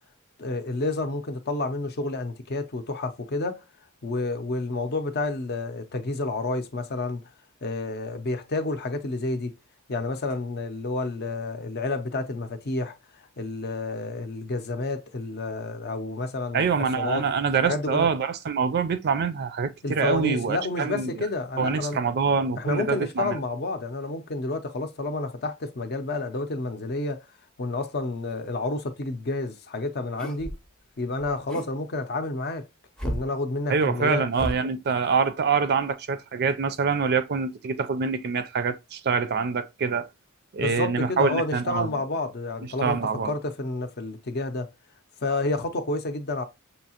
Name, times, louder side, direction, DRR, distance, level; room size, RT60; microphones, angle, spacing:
voice 1, 0.4-3.6 4.0-7.2 7.6-9.5 9.9-12.9 13.4-17.2 17.6-18.1 19.8-22.0 22.6-27.2 27.6-30.6 31.0-32.6 33.0-34.2 40.6-43.0 43.2-44.7 45.2-46.4, left 2 dB, 50° left, 0.6 m, -30 dB
voice 2, 16.5-21.2 21.6-23.4 33.7-40.1 40.5-42.0 42.8-43.3, right 5 dB, 50° right, 0.4 m, -25 dB
sound 1, 30.2-30.7 31.2-31.7 33.0-33.3 34.3-34.5, equal, 5° left, 0.5 m, -32 dB
6.3 x 2.7 x 2.8 m
head